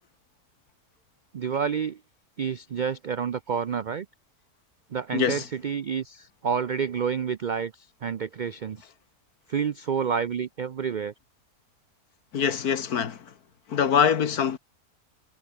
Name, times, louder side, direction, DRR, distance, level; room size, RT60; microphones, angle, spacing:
voice 1, 1.3-2.0 2.4-4.1 4.9-8.9 9.5-11.1, right 7 dB, 80° right, 0.4 m, -29 dB
voice 2, 5.1-5.5 12.3-13.2 13.7-14.6, left 7 dB, 80° left, 1.9 m, -24 dB
omnidirectional pair, 1.6 m